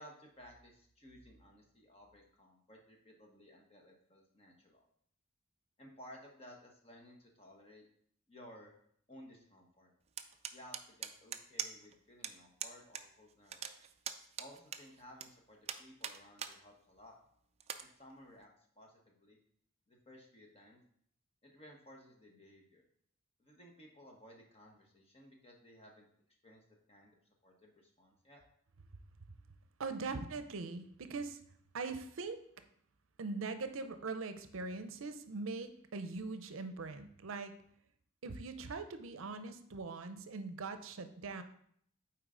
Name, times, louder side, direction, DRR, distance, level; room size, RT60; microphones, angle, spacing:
voice 1, 0.0-4.8 5.8-7.8 8.3-8.7 9.1-9.9 10.5-13.8 14.4-17.2 17.8-18.5 18.7-19.4 19.9-20.8 21.4-22.8 23.4-26.1 26.4-26.6 26.9-27.2 27.4-28.4, equal, 30° left, 1 dB, 1.2 m, -57 dB
sound 1, 10.2-11.9 12.2-12.3 12.6-13.0 13.3-15.3 15.7-16.5 17.0-17.1 17.6-17.8, right 8 dB, 30° right, 0.3 m, -42 dB
voice 2, 29.8-31.4 31.7-32.4 33.2-37.5 38.2-41.4, right 3 dB, 75° right, 9 dB, 0.6 m, -41 dB
8.1 x 4.6 x 3.8 m, 0.66 s
head